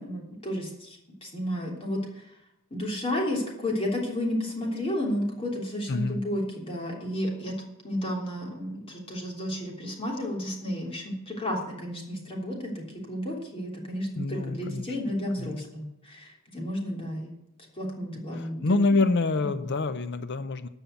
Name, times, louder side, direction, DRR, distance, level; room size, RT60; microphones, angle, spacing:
voice 1, 0.0-2.0 2.7-7.5 7.8-17.3 17.8-18.6 18.9-19.0 19.5-19.6, left 1 dB, 25° left, -2 dB, 3.3 m, -32 dB
voice 2, 5.9-6.2 14.2-15.0 15.4-15.6 18.3-20.7, left 3 dB, 55° left, 12 dB, 0.6 m, -26 dB
14.0 x 5.6 x 9.2 m, 0.83 s
head